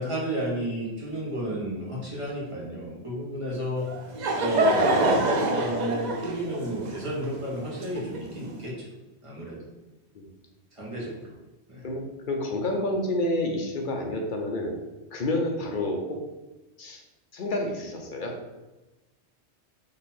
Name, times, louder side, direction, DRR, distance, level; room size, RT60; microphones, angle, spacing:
voice 1, 0.0-3.9 4.4-8.9 9.2-9.6 10.7-11.3 11.7-11.8, right 1 dB, 30° right, -6 dB, 1.3 m, -32 dB
Laughter / Crowd, 3.8-8.5, right 1 dB, 55° right, 0.5 m, -26 dB
voice 2, 11.8-14.8 15.1-16.2 16.8-17.0 17.3-18.3, left 1 dB, 55° left, 2 dB, 0.7 m, -29 dB
3.9 x 2.9 x 4.2 m, 1.1 s
omnidirectional pair, 1.2 m